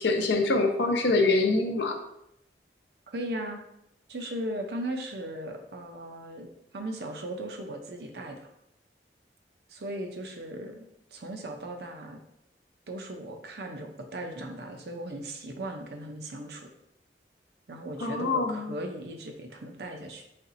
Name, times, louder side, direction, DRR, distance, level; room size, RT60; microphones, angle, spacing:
voice 1, 0.0-2.0 18.0-18.8, left 3 dB, 85° left, 4 dB, 0.6 m, -25 dB
voice 2, 3.1-3.6 4.1-8.5 9.7-12.2 12.9-16.7 17.7-20.2, right 1 dB, 70° right, 3 dB, 0.6 m, -37 dB
4.2 x 4.0 x 2.6 m, 0.80 s
head